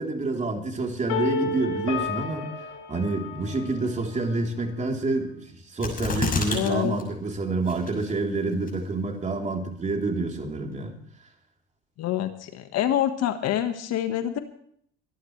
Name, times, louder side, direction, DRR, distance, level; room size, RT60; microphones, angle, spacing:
voice 1, 0.0-2.5 2.9-10.9, right 3 dB, 25° right, 1 dB, 3.7 m, -28 dB
sound 1, 1.1-4.0, left 4 dB, 70° left, 4.6 m, -31 dB
sound 2, 5.8-6.7 7.0-7.1 7.7-8.1 8.7-8.8, left 4 dB, 25° left, 6.6 m, -27 dB
voice 2, 6.5-7.0 12.0-14.4, left 11 dB, 55° left, 8 dB, 1.6 m, -26 dB
24.5 x 12.0 x 3.3 m, 0.65 s
supercardioid pair, 100°, 31 cm